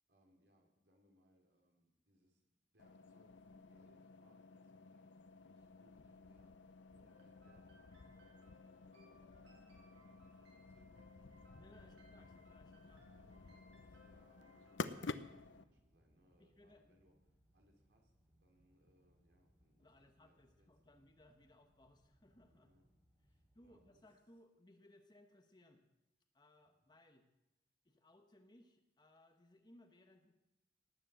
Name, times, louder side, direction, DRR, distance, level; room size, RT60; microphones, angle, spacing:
voice 1, 0.1-5.1 5.4-12.1 13.1-17.1 17.5-21.0 22.5-22.8 23.2-24.0 26.6-26.8, equal, 65° right, 1 dB, 3.4 m, -74 dB
sound 1, 2.8-15.6, left 4 dB, 90° left, 0.7 m, -52 dB
sound 2, 7.1-15.1, left 1 dB, 85° right, 6.9 m, -69 dB
sound 3, 9.9-24.0, equal, ahead, 3.8 m, -75 dB
voice 2, 11.6-13.1 16.4-17.0 19.8-22.7 23.3-25.9 26.3-27.3 27.8-30.3, left 1 dB, 25° left, 5 dB, 1.1 m, -65 dB
18.5 x 7.7 x 7.7 m, 0.92 s
head